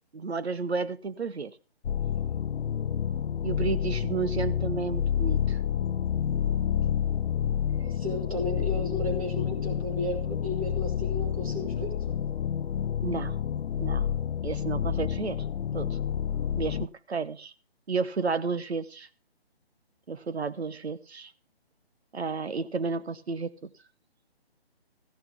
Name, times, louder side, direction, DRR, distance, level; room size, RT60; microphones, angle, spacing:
voice 1, 0.1-1.6 3.4-5.6 13.0-13.4 13.8-14.1 14.4-15.5 15.7-16.0 16.6-17.5 17.9-19.1 20.1-21.3 22.1-23.7, right 5 dB, 85° right, 13 dB, 1.2 m, -32 dB
sound 1, 1.8-16.9, left 9 dB, 80° left, 0.5 m, -29 dB
voice 2, 7.8-12.2, left 2 dB, 35° right, 2 dB, 2.8 m, -34 dB
15.0 x 6.1 x 7.0 m, 0.36 s
hypercardioid pair, 180°, 32 cm